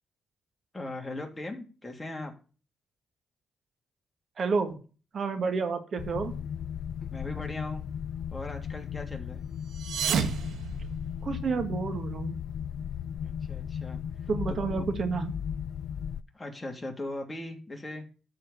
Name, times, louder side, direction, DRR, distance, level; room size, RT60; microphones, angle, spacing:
voice 1, 0.7-2.3 7.1-7.8 8.3-9.4 13.2-14.0 16.3-18.1, left 2 dB, 20° left, 2 dB, 3.1 m, -39 dB
voice 2, 4.4-4.8 5.1-6.3 11.2-12.4 14.3-15.3, right 4 dB, 55° right, 7 dB, 2.0 m, -30 dB
sound 1, 6.0-16.2, left 8 dB, 75° left, 0.6 m, -36 dB
sound 2, 9.6-11.5, right 7 dB, 80° right, 1.5 m, -31 dB
13.5 x 4.8 x 7.3 m, 0.36 s
cardioid pair, 80°, 0 cm